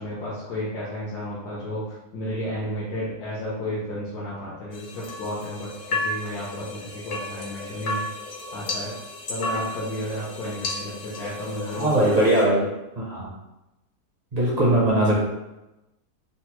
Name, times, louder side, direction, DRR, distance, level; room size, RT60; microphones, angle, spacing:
voice 1, 0.0-8.1 8.5-9.0 9.3-12.3, equal, 80° left, -7 dB, 1.3 m, -32 dB
sound 1, 4.7-12.4, left 2 dB, 60° left, 0.7 m, -33 dB
voice 2, 11.7-12.7 13.0-13.3 14.3-15.3, right 1 dB, 40° right, -6 dB, 0.5 m, -20 dB
4.0 x 2.1 x 2.9 m, 0.96 s
omnidirectional pair, 1.7 m